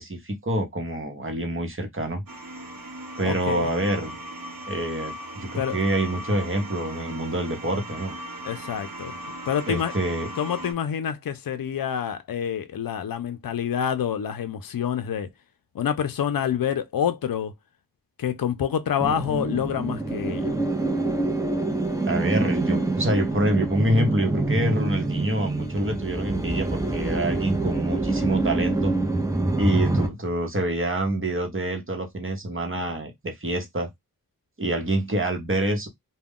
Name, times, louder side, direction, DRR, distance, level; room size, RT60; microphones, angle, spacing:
voice 1, 0.0-2.2 3.2-4.2 4.7-8.1 9.7-10.3 22.1-28.9 29.6-33.9 34.6-35.9, right 1 dB, 35° right, 0.9 m, -26 dB
sound 1, 2.3-10.7, equal, 70° right, 0.9 m, -38 dB
voice 2, 3.2-3.8 5.5-5.8 8.5-9.1 9.5-9.9 10.4-15.3 15.7-17.5 18.2-20.6, left 8 dB, 70° left, 0.5 m, -27 dB
sound 2, 19.0-30.1, right 2 dB, 10° right, 0.6 m, -25 dB
2.3 x 2.2 x 3.5 m
wide cardioid pair, 45°, 35 cm